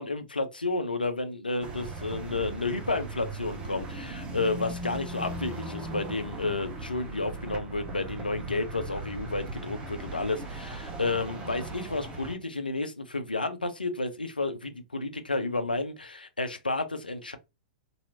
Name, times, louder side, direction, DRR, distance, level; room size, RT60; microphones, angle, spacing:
voice 1, 0.0-17.4, left 3 dB, 90° left, 0.6 m, -31 dB
sound 1, 1.6-12.3, right 2 dB, 25° right, 0.9 m, -38 dB
3.0 x 2.8 x 2.7 m
figure-of-eight pair, 105°, 5 cm